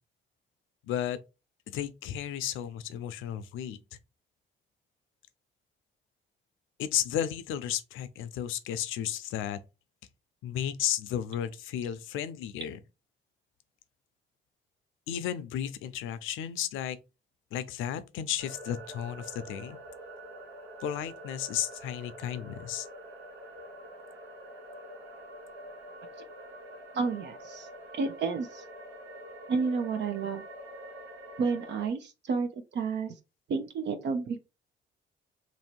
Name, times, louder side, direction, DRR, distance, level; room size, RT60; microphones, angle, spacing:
voice 1, 0.8-1.2 1.7-3.8 6.8-9.6 10.4-12.8 15.1-17.0 17.5-19.8 20.8-22.9, left 10 dB, 90° left, 0.5 m, -33 dB
sound 1, 18.4-31.9, right 1 dB, 85° right, 1.2 m, -46 dB
voice 2, 26.9-27.7 27.9-28.6 29.5-30.4 31.4-33.1 33.5-34.4, right 5 dB, 60° right, 0.7 m, -31 dB
3.0 x 2.7 x 4.4 m
cardioid pair, 90°, 20 cm